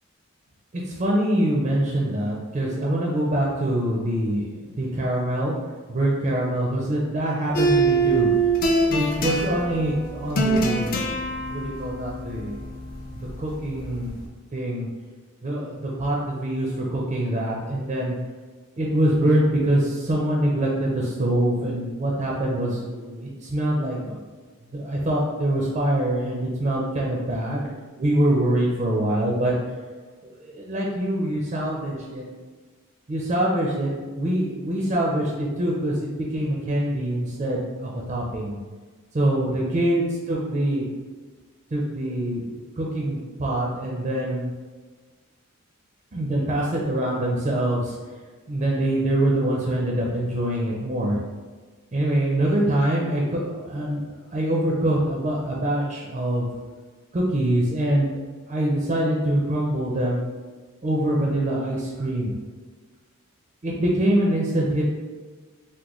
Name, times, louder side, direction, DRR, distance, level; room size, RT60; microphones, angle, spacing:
voice 1, 0.7-5.5 5.9-8.3 8.8-11.0 11.5-12.6 13.4-14.2 14.5-14.9 15.4-18.2 18.8-24.2 24.7-27.7 28.0-29.5 30.2-32.2 33.1-38.6 39.1-40.8 41.7-44.5 46.1-48.0 48.5-51.2 51.9-56.5 57.1-58.2 58.5-60.2 60.8-62.3 63.6-64.9, right 1 dB, 35° right, -3 dB, 0.4 m, -24 dB
sound 1, 7.5-14.3, right 3 dB, 40° left, 0.4 m, -24 dB
3.6 x 2.2 x 3.0 m, 1.4 s
head